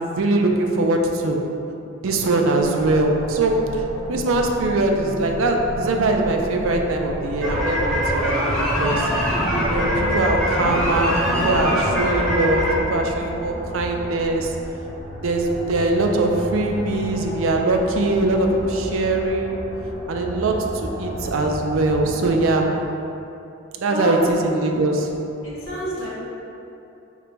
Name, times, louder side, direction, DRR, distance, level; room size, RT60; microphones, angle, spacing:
voice 1, 0.0-1.4 2.0-3.8 4.1-9.1 9.5-14.6 15.2-19.6 20.1-22.7 23.8-25.1, right 2 dB, 75° right, 2 dB, 0.4 m, -22 dB
sound 1, 2.6-22.5, equal, 55° left, 0.8 m, -34 dB
sound 2, 7.4-12.7, equal, 5° left, 0.5 m, -22 dB
voice 2, 25.4-26.1, left 1 dB, 80° left, -8 dB, 1.3 m, -29 dB
3.9 x 2.2 x 4.5 m, 2.8 s
head